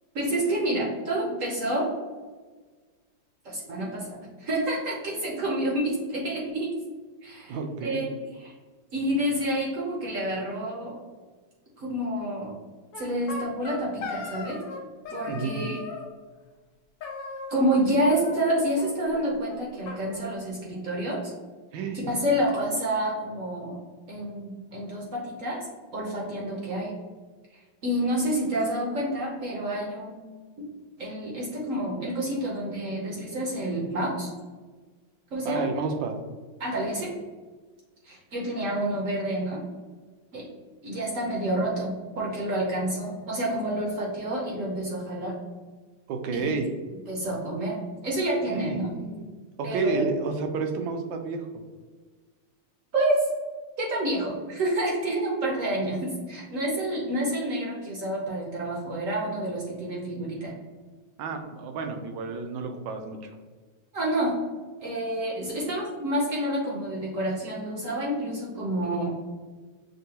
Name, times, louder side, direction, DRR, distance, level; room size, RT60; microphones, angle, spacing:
voice 1, 0.1-1.9 3.4-6.7 7.2-8.5 8.9-11.0 11.8-12.5 13.0-14.6 15.1-15.8 17.5-21.3 21.9-23.8 24.1-25.7 25.9-26.9 27.8-30.3 30.6-30.7 31.0-34.3 35.3-35.6 36.6-37.1 38.0-39.6 40.3-40.5 40.8-45.3 46.3-46.5 47.1-47.8 48.0-48.9 49.6-50.1 52.9-53.3 53.8-60.5 63.9-64.4 64.8-69.1, right 1 dB, 60° right, -2 dB, 0.9 m, -28 dB
voice 2, 7.5-8.0 15.3-15.6 21.7-22.1 35.4-36.2 46.1-46.7 48.5-49.3 49.6-51.5 61.2-63.3, right 4 dB, 80° right, 5 dB, 1.3 m, -30 dB
sound 1, 12.9-14.8 15.1-16.1 17.0-17.8 18.0-18.9 19.1-19.2 19.5-19.6 19.9-20.9, left 4 dB, 75° left, 1.3 m, -38 dB
6.4 x 2.2 x 2.8 m, 1.4 s
omnidirectional pair, 2.0 m